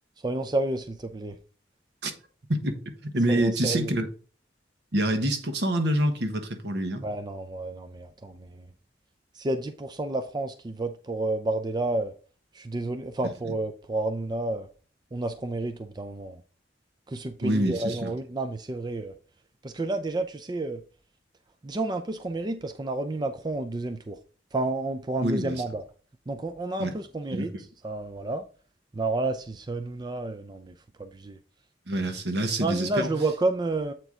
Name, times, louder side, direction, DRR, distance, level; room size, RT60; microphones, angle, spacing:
voice 1, 0.2-1.4 3.3-3.9 7.0-8.7 9.3-12.1 12.5-14.7 15.1-16.4 17.1-19.2 19.6-20.8 21.6-24.2 24.5-25.8 26.3-27.5 27.8-28.4 28.9-31.4 32.6-33.9, right 2 dB, 25° right, 0.5 m, -30 dB
voice 2, 2.5-4.1 4.9-7.1 17.4-18.1 25.2-25.6 26.8-26.9 27.3-27.6 31.9-33.1, right 1 dB, 70° right, 1.3 m, -26 dB
8.0 x 4.5 x 3.7 m
head